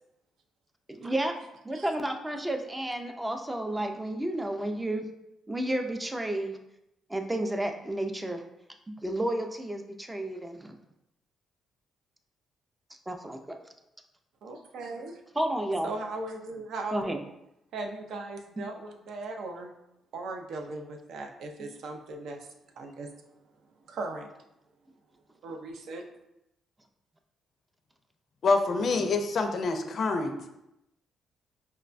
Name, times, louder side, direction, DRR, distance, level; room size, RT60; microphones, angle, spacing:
voice 1, 0.9-1.3 1.6-5.1 5.5-6.6 7.1-8.4 8.9-10.8 13.1-13.6 15.4-15.9 16.9-17.2, right 1 dB, 15° right, 4 dB, 0.4 m, -31 dB
voice 2, 14.4-15.2 15.8-17.1 17.7-19.7 20.1-22.5 22.8-23.1 23.9-24.3 25.4-26.0, right 2 dB, 75° right, 3 dB, 0.4 m, -38 dB
voice 3, 28.4-30.3, left 3 dB, 55° left, 6 dB, 0.4 m, -26 dB
4.5 x 2.1 x 2.5 m, 0.86 s
cardioid pair, 90°, 0 cm